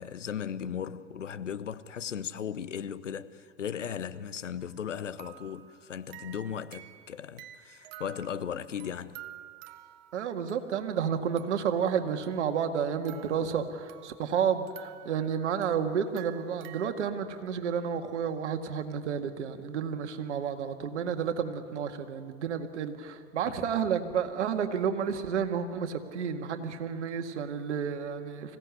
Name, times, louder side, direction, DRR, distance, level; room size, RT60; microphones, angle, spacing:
voice 1, 0.0-9.2, left 8 dB, 90° left, 0.9 m, -37 dB
sound 1, 4.6-4.8 5.2-11.0 11.4-11.8 12.2-14.3 14.7-16.9, right 13 dB, 45° right, 1.3 m, -51 dB
voice 2, 10.1-28.6, right 7 dB, 75° right, 1.9 m, -31 dB
25.0 x 16.5 x 9.5 m
hypercardioid pair, 90°, 36 cm